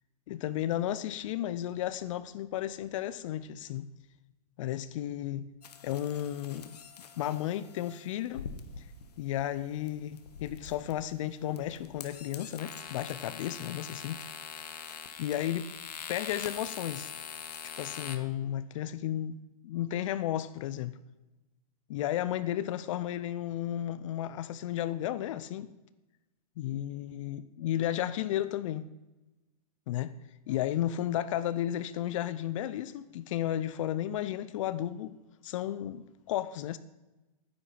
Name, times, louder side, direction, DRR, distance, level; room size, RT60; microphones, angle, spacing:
voice 1, 0.3-3.9 4.6-5.5 5.8-6.8 7.2-8.5 9.2-14.2 14.6-14.7 15.2-15.7 16.1-17.1 17.6-19.4 19.6-21.0 21.9-25.7 26.6-28.9 29.9-30.2 30.5-35.1 35.4-36.8, left 12 dB, 55° left, 0.6 m, -33 dB
sound 1, 5.6-18.2, left 7 dB, 90° left, 1.3 m, -44 dB
9.7 x 8.7 x 5.6 m
hypercardioid pair, 135°, 20 cm